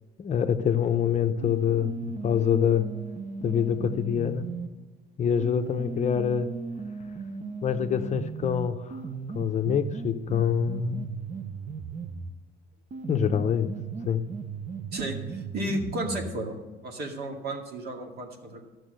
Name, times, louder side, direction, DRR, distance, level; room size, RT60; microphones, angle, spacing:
voice 1, 0.2-2.8 3.4-4.5 5.2-6.5 7.6-8.8 9.3-11.1 13.1-13.7 14.1-14.2, left 8 dB, 40° left, 8 dB, 0.7 m, -25 dB
sound 1, 1.4-4.7 5.4-12.4 12.9-16.4, right 5 dB, 40° right, 0.8 m, -37 dB
voice 2, 14.9-16.6 16.8-18.6, right 1 dB, 60° right, 2 dB, 2.1 m, -33 dB
12.5 x 6.3 x 6.5 m, 1.3 s
cardioid pair, 115°, 18 cm